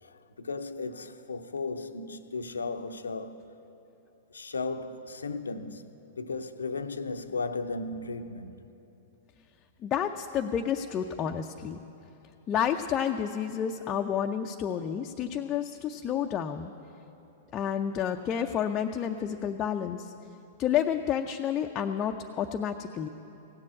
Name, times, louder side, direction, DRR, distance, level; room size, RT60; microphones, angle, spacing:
voice 1, 0.0-3.4 4.3-8.6, left 3 dB, 80° left, 0.6 m, -35 dB
voice 2, 9.8-11.8 12.5-16.7 17.5-20.1 20.6-23.1, left 8 dB, 30° left, 0.5 m, -30 dB
16.0 x 7.5 x 8.6 m
figure-of-eight pair, 105°, 0 cm